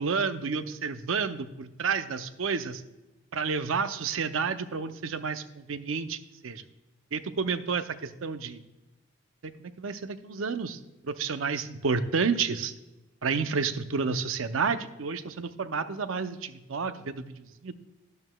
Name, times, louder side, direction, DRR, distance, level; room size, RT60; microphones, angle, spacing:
voice 1, 0.0-2.8 3.3-6.2 6.4-6.6 7.1-8.6 9.4-10.8 11.0-12.7 13.2-17.7, right 5 dB, 70° right, 10 dB, 0.6 m, -30 dB
12.0 x 11.0 x 2.3 m, 1.0 s
head